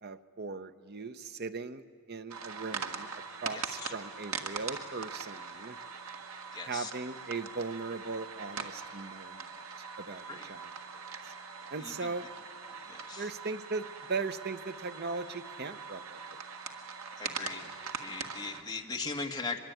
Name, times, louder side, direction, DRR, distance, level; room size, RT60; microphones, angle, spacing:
voice 1, 0.0-5.8 6.6-9.5 10.0-11.3 11.7-12.3 13.1-16.4, right 4 dB, 45° right, 10 dB, 0.8 m, -39 dB
sound 1, 2.3-18.6, right 5 dB, 75° right, 1.7 m, -42 dB
voice 2, 3.5-3.9 6.5-6.9 10.3-10.5 11.8-12.1 12.8-13.3 17.2-17.7 18.0-19.6, left 4 dB, 20° left, 2 dB, 1.6 m, -39 dB
23.5 x 22.0 x 9.2 m, 2.2 s
head